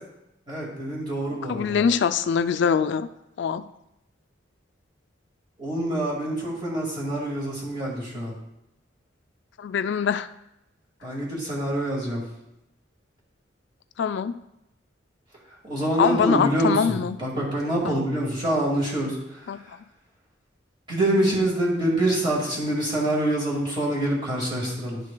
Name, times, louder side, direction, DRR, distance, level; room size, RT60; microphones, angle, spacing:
voice 1, 0.5-1.9 5.6-8.3 11.0-12.2 15.6-19.7 20.9-25.0, right 1 dB, 25° right, -5 dB, 1.9 m, -26 dB
voice 2, 1.5-3.1 3.4-3.7 9.6-10.3 14.0-14.3 16.0-17.2 17.8-17.9 19.5-19.6, left 6 dB, 65° left, 12 dB, 0.3 m, -23 dB
11.0 x 6.4 x 2.2 m, 0.87 s
head